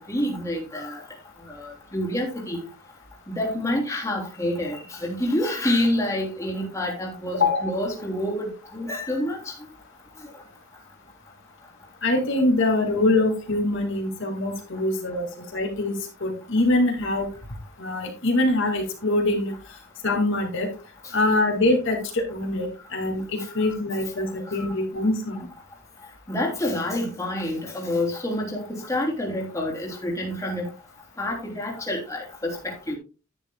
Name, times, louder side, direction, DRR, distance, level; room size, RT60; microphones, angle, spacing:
voice 1, 0.1-1.0 1.5-2.7 3.3-9.5 23.6-23.7 24.5-24.7 26.3-30.6 31.2-33.0, left 1 dB, 15° left, 3.1 m, -28 dB
voice 2, 7.3-7.6 12.0-17.3 17.8-19.5 20.0-20.7 21.1-25.5, left 2 dB, 60° left, 2.4 m, -24 dB
11.0 x 10.5 x 2.3 m
head